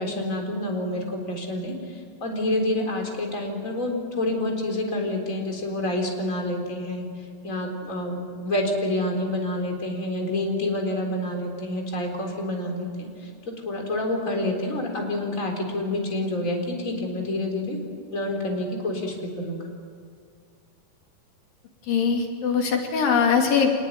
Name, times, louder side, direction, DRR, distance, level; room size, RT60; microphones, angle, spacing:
voice 1, 0.0-1.7 2.2-7.0 7.4-13.1 13.7-17.8 18.1-19.6, left 1 dB, 25° left, 2 dB, 4.2 m, -28 dB
voice 2, 21.9-23.7, left 6 dB, 90° left, 2 dB, 4.4 m, -21 dB
26.0 x 20.0 x 9.4 m, 2.2 s
omnidirectional pair, 3.9 m